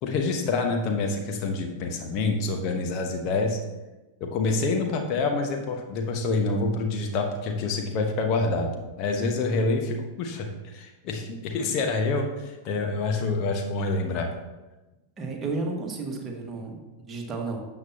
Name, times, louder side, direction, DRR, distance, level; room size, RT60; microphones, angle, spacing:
voice 1, 0.0-3.6 4.2-14.3, left 3 dB, 40° left, 3 dB, 1.1 m, -27 dB
voice 2, 15.2-17.6, right 3 dB, 20° right, 0 dB, 1.8 m, -32 dB
12.5 x 7.1 x 2.9 m, 1.1 s
figure-of-eight pair, 90°, 0 cm